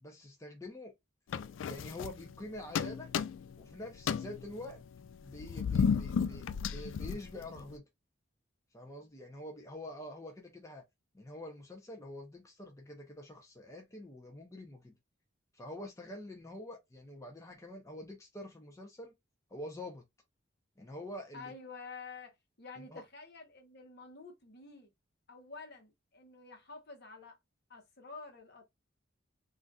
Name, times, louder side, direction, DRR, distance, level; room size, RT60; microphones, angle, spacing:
voice 1, 0.0-0.9 1.6-3.1 3.6-4.8 5.2-7.8 8.7-10.8 11.1-14.9 15.5-19.1 19.5-20.0 20.8-21.5 22.9-23.0, left 1 dB, 15° left, 0.6 m, -46 dB
sound 1, 1.3-2.4 2.7-3.6 4.0-7.7, left 6 dB, 80° left, 0.3 m, -33 dB
voice 2, 21.3-24.9 25.3-27.4 27.7-28.6, left 4 dB, 55° left, 1.0 m, -49 dB
3.8 x 2.5 x 2.3 m
head